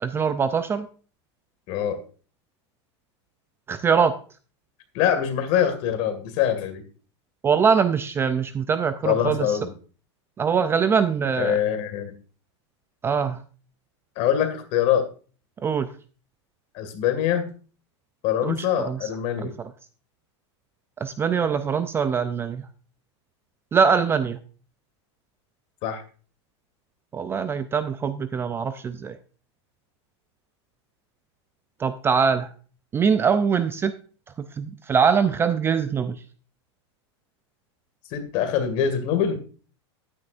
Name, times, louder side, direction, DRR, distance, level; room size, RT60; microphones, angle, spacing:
voice 1, 0.0-0.9 3.7-4.1 7.4-9.5 10.4-11.6 13.0-13.4 15.6-15.9 18.4-19.1 19.4-19.5 21.0-22.6 23.7-24.4 27.1-29.2 31.8-32.5 32.9-33.9 34.6-36.2, right 6 dB, 15° right, 11 dB, 0.4 m, -23 dB
voice 2, 1.7-2.0 4.9-6.8 9.0-9.7 11.4-12.1 14.2-15.1 16.7-17.5 18.2-19.5 25.8-26.0 38.1-39.4, left 9 dB, 45° left, 9 dB, 2.0 m, -24 dB
10.5 x 9.7 x 2.5 m, 0.39 s
supercardioid pair, 140°, 15 cm